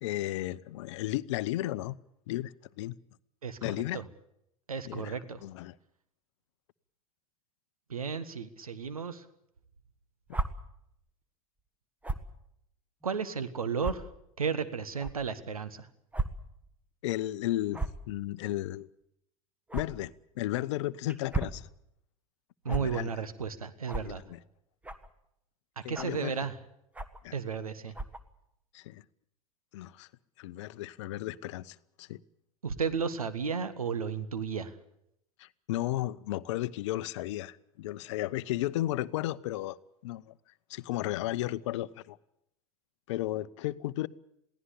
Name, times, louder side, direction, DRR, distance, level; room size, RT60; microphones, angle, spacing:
voice 1, 0.0-2.0 2.3-3.0 3.6-4.0 4.8-5.7 17.0-17.8 18.1-18.9 19.7-21.7 22.7-23.1 24.0-24.4 25.8-26.3 27.2-27.3 28.7-29.0 29.7-30.1 30.4-32.2 35.4-39.8 40.0-40.3 40.7-42.2 43.1-44.1, left 15 dB, 55° left, 18 dB, 0.8 m, -34 dB
voice 2, 4.7-5.4 7.9-9.2 13.0-14.1 14.4-15.9 22.6-24.2 25.9-26.5 27.3-27.9 32.6-34.7, right 6 dB, 80° right, 13 dB, 1.3 m, -33 dB
sound 1, 10.3-10.5 12.0-12.3 13.0-13.1 13.8-13.9 15.0-15.1 16.1-16.3 16.6-16.7 17.7-18.0 19.7-19.8 21.1-21.6 22.7-22.8 23.9-24.1 24.8-25.1 25.9-26.2 26.9-27.2 27.9-28.2, right 3 dB, 10° right, 1.5 m, -33 dB
22.5 x 16.5 x 8.5 m, 0.78 s
figure-of-eight pair, 85°, 18 cm